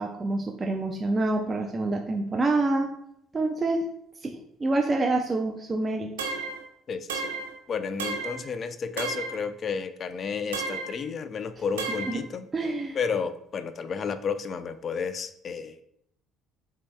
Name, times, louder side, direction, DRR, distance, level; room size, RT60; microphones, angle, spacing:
voice 1, 0.0-2.9 3.3-3.8 4.2-6.1 12.0-12.2 12.5-13.0, right 2 dB, 30° right, 2 dB, 0.5 m, -27 dB
sound 1, 6.2-6.6 7.1-7.5 8.0-8.4 9.0-9.4 10.5-11.0 11.8-12.2, right 4 dB, 90° right, 0.5 m, -32 dB
voice 2, 6.9-7.2 7.7-12.5 12.9-15.8, left 6 dB, 45° left, 11 dB, 0.4 m, -32 dB
8.2 x 2.8 x 2.2 m, 0.74 s
hypercardioid pair, 60°, 0 cm